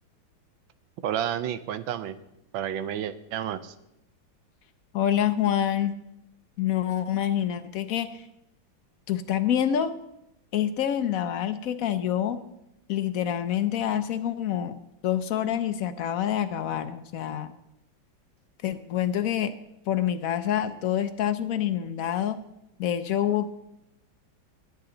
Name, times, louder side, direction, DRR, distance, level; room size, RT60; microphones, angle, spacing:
voice 1, 1.0-2.2 2.5-3.7, right 10 dB, 75° right, 12 dB, 1.4 m, -30 dB
voice 2, 4.9-5.9 6.6-8.3 9.1-9.9 10.5-12.4 12.9-14.8 15.0-17.5 18.6-19.5 19.9-22.4 22.8-23.5, left 10 dB, 70° left, 10 dB, 0.8 m, -27 dB
20.0 x 7.8 x 3.9 m, 0.84 s
omnidirectional pair, 2.2 m